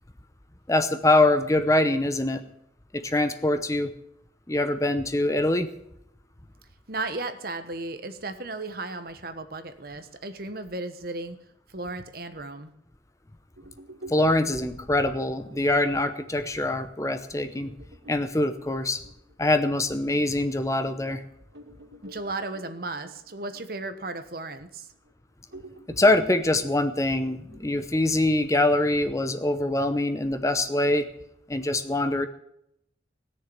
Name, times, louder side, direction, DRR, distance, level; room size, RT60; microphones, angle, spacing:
voice 1, 0.7-2.4 2.9-3.9 4.5-5.7 14.1-17.7 18.1-19.0 19.4-21.2 25.9-31.1 31.5-32.3, left 2 dB, 15° left, 9 dB, 0.8 m, -24 dB
voice 2, 6.9-11.4 11.7-12.7 22.0-24.9, right 2 dB, 50° right, 9 dB, 1.3 m, -35 dB
sound 1, 13.6-20.6 21.0-21.1 21.5-25.1 25.5-28.6, right 1 dB, 85° right, 2.6 m, -49 dB
17.5 x 6.7 x 9.7 m, 0.77 s
head